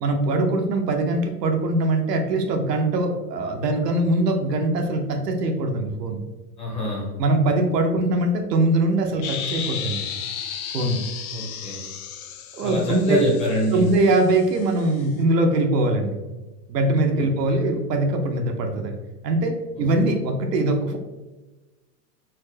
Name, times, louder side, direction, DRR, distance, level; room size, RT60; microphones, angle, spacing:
voice 1, 0.0-6.2 7.2-10.0 10.7-11.0 12.5-13.2 13.7-16.2 16.7-19.0 19.2-21.0, right 2 dB, 90° right, 4 dB, 0.8 m, -22 dB
voice 2, 6.6-7.1 11.3-11.8 12.6-13.9 17.2-17.6, equal, 15° left, -3 dB, 0.5 m, -25 dB
sound 1, 9.2-15.1, left 8 dB, 65° left, 0.6 m, -34 dB
4.3 x 2.0 x 2.7 m, 1.2 s
hypercardioid pair, 135°, 47 cm